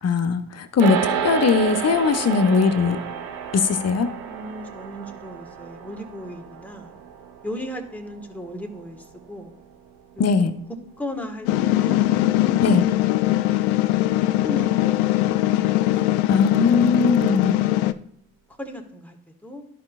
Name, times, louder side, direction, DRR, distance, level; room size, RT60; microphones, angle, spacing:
voice 1, 0.0-3.0 3.5-4.1 10.2-10.5 12.6-12.8 16.3-17.6, left 5 dB, 35° left, 9 dB, 0.9 m, -20 dB
sound 1, 0.8-10.3, right 7 dB, 80° right, 0.8 m, -31 dB
voice 2, 4.3-7.0 7.4-9.5 10.1-10.5 11.0-12.2 14.4-15.2 15.6-16.2 18.6-19.7, left 1 dB, 5° left, 2 dB, 1.7 m, -37 dB
sound 2, 11.5-17.9, left 15 dB, 70° left, 0.5 m, -21 dB
13.5 x 5.0 x 2.5 m, 0.66 s
figure-of-eight pair, 45°, 43 cm